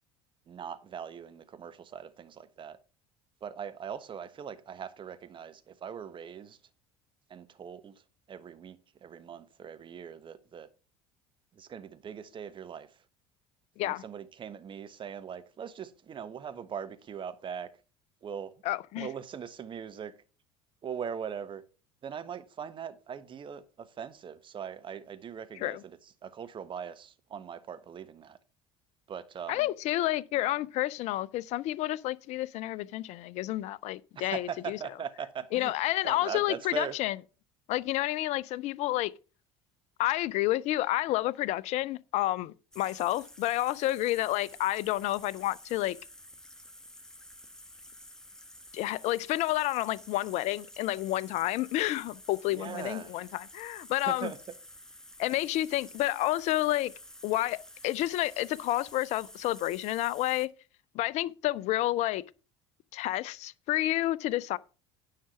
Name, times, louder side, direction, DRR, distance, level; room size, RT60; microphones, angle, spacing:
voice 1, 0.5-2.8 3.4-6.6 7.3-7.9 8.3-10.7 11.6-12.9 13.8-17.7 18.2-18.5 19.0-20.1 20.8-21.6 22.0-28.4 29.1-29.7 34.1-35.7 36.0-36.9 52.5-53.1 54.1-54.4, right 8 dB, 35° right, 1.2 m, -40 dB
voice 2, 18.6-19.1 25.6-25.8 29.5-34.8 35.5-37.2 37.7-39.1 40.0-46.0 48.7-54.3 55.2-56.9 57.2-60.5 60.9-62.2 62.9-64.6, left 15 dB, 55° left, 0.5 m, -30 dB
sound 1, 42.7-60.5, left 1 dB, 5° left, 1.4 m, -51 dB
10.0 x 5.8 x 5.7 m
hypercardioid pair, 65°, 14 cm